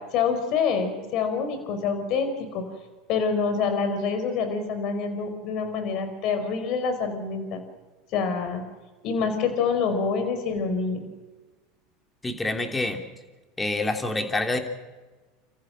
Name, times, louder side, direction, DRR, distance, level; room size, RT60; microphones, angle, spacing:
voice 1, 0.0-2.6 3.1-7.6 8.1-8.6 9.0-11.0, left 5 dB, 55° left, 8 dB, 4.7 m, -26 dB
voice 2, 12.2-13.0 13.6-14.6, left 2 dB, 15° left, 4 dB, 3.1 m, -27 dB
29.5 x 14.5 x 6.5 m, 1.3 s
hypercardioid pair, 100°, 0 cm